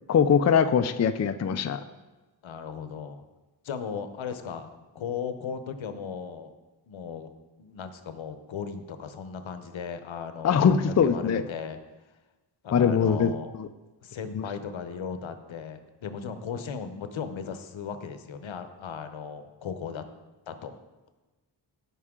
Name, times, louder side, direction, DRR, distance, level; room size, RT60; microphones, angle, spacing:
voice 1, 0.1-1.8 10.4-11.4 12.7-13.7 14.3-14.4, left 7 dB, 35° left, 9 dB, 0.4 m, -22 dB
voice 2, 2.4-3.2 3.6-4.7 4.9-6.5 6.9-7.3 7.6-11.8 12.6-13.5 14.0-20.0 20.5-20.8, left 6 dB, 80° left, 9 dB, 0.9 m, -36 dB
16.0 x 5.6 x 3.7 m, 1.1 s
wide cardioid pair, 110°, 46 cm